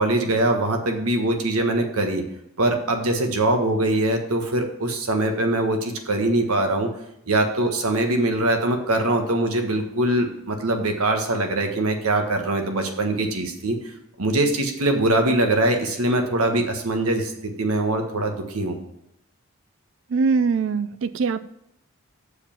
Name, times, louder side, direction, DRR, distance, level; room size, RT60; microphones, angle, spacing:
voice 1, 0.0-2.2 2.6-6.9 7.3-13.8 14.2-18.8, right 1 dB, 85° right, 4 dB, 1.4 m, -22 dB
voice 2, 20.1-21.4, right 4 dB, 55° right, 14 dB, 0.3 m, -22 dB
7.1 x 4.9 x 7.2 m, 0.81 s
head